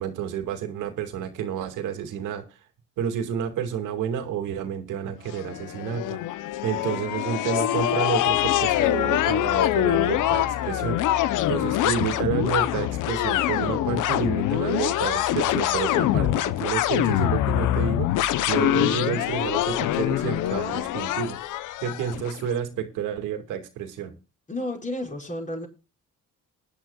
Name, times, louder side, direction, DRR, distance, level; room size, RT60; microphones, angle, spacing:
voice 1, 0.0-2.4 3.0-6.2 6.6-11.0 11.5-21.4 21.8-24.1, right 8 dB, 90° right, 6 dB, 2.1 m, -30 dB
sound 1, 5.3-22.4, left 13 dB, 85° left, 0.8 m, -24 dB
voice 2, 24.5-25.7, left 1 dB, 25° left, 0 dB, 5.3 m, -31 dB
19.5 x 10.5 x 2.3 m, 0.30 s
cardioid pair, 90°, 30 cm